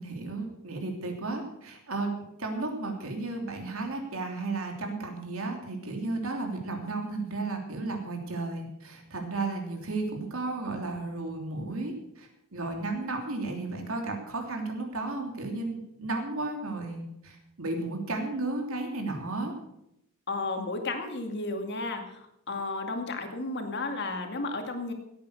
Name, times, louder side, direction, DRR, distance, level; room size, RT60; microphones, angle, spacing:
voice 1, 0.0-19.5, right 2 dB, 70° right, 3 dB, 3.1 m, -34 dB
voice 2, 20.3-24.9, left 2 dB, 50° left, 5 dB, 2.3 m, -33 dB
16.5 x 8.9 x 6.7 m, 0.81 s
head